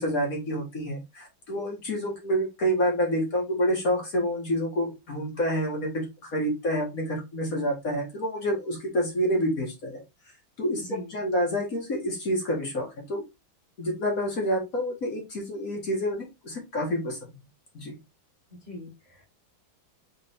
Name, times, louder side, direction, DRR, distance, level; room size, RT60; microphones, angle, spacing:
voice 1, 0.0-10.0 10.6-13.2 13.8-17.2 17.7-18.0, equal, 45° left, 0 dB, 1.8 m, -28 dB
voice 2, 10.8-11.1 18.7-19.2, left 2 dB, 30° right, -2 dB, 0.9 m, -41 dB
4.3 x 3.5 x 3.4 m, 0.23 s
omnidirectional pair, 2.2 m